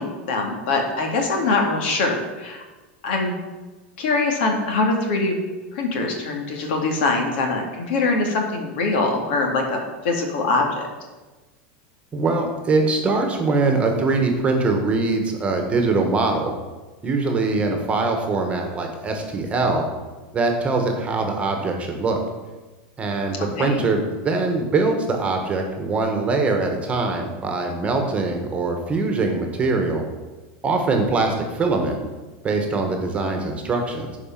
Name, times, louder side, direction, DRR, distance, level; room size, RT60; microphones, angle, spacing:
voice 1, 0.0-2.6 3.0-3.3 4.0-5.3 5.7-9.8 10.0-10.9 17.6-17.7 23.6-23.8, left 3 dB, 70° left, 2 dB, 2.2 m, -23 dB
voice 2, 12.1-16.5 17.0-19.9 20.3-22.2 23.0-30.0 30.6-32.0 32.4-34.1, right 3 dB, 20° right, 3 dB, 1.4 m, -22 dB
11.0 x 4.9 x 5.8 m, 1.2 s
supercardioid pair, 140°, 6 cm